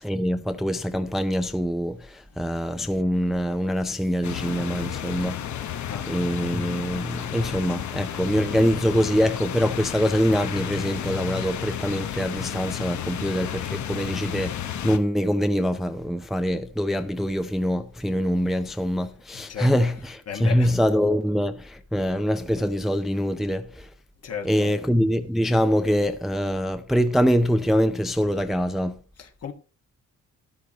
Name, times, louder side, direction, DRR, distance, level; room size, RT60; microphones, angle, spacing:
voice 1, 0.0-5.7 6.1-23.9 24.4-29.0, equal, ahead, 0.5 m, -24 dB
sound 1, 4.2-15.0, left 10 dB, 65° left, 0.9 m, -32 dB
voice 2, 19.3-19.7 20.3-20.7 24.2-24.8 29.2-29.5, left 7 dB, 50° left, 1.5 m, -35 dB
13.0 x 10.5 x 2.9 m
cardioid pair, 140°, 31 cm